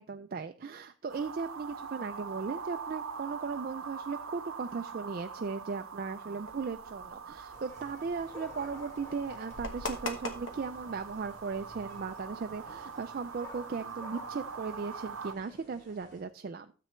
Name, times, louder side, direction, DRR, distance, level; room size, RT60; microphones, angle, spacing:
voice 1, 0.0-16.7, right 5 dB, 45° right, 7 dB, 0.4 m, -37 dB
sound 1, 1.1-15.3, right 6 dB, 75° right, 0.7 m, -43 dB
sound 2, 6.4-12.5, left 2 dB, 65° left, 1.3 m, -44 dB
sound 3, 7.5-16.2, left 2 dB, 15° left, 2.1 m, -52 dB
13.0 x 7.6 x 3.2 m, 0.38 s
head